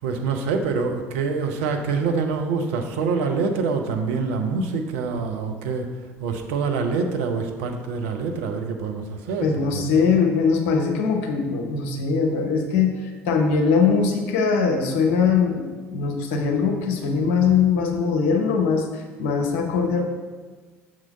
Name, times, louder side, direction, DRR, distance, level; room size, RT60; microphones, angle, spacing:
voice 1, 0.0-5.9 6.2-9.9, right 4 dB, 65° right, 4 dB, 0.7 m, -25 dB
voice 2, 9.4-20.0, left 5 dB, 65° left, 3 dB, 0.9 m, -21 dB
6.2 x 3.8 x 5.5 m, 1.4 s
figure-of-eight pair, 55°, 7 cm